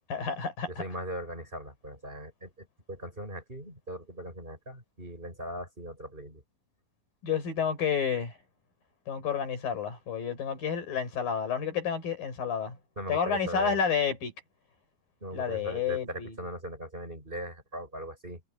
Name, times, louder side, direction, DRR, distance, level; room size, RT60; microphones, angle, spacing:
voice 1, 0.1-0.8 7.2-8.4 9.1-12.8 13.1-14.3 15.3-16.3, left 7 dB, 70° left, 6.9 m, -30 dB
voice 2, 0.7-6.4 13.0-13.8 15.2-18.5, right 1 dB, 15° right, 6.5 m, -40 dB
omnidirectional pair, 4.1 m